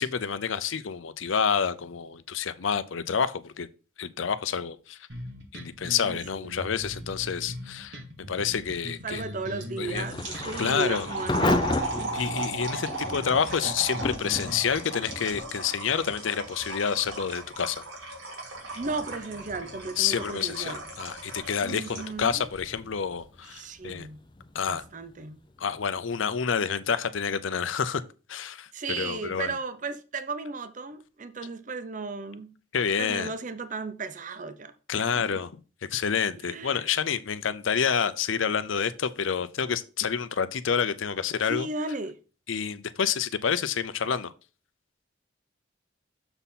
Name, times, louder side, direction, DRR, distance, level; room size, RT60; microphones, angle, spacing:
voice 1, 0.0-3.7 4.0-5.0 5.5-8.0 8.3-9.2 9.8-10.1 10.6-11.1 12.1-17.8 20.0-24.1 24.5-24.8 25.6-28.0 28.3-29.5 32.7-33.3 34.9-35.5 35.9-41.7 42.5-44.3, left 7 dB, 85° left, 0.6 m, -28 dB
sound 1, 5.1-14.7, equal, 65° right, 2.0 m, -40 dB
voice 2, 6.0-6.4 9.0-12.2 18.7-20.8 21.6-22.5 23.4-24.2 24.7-25.4 28.7-32.5 33.0-35.4 36.4-36.8 41.5-42.2, right 3 dB, 40° right, 0.6 m, -35 dB
sound 2, 9.6-22.2, right 2 dB, 90° right, 2.7 m, -37 dB
Thunder / Rain, 9.8-26.5, left 2 dB, 25° left, 0.5 m, -36 dB
6.9 x 4.2 x 5.6 m
head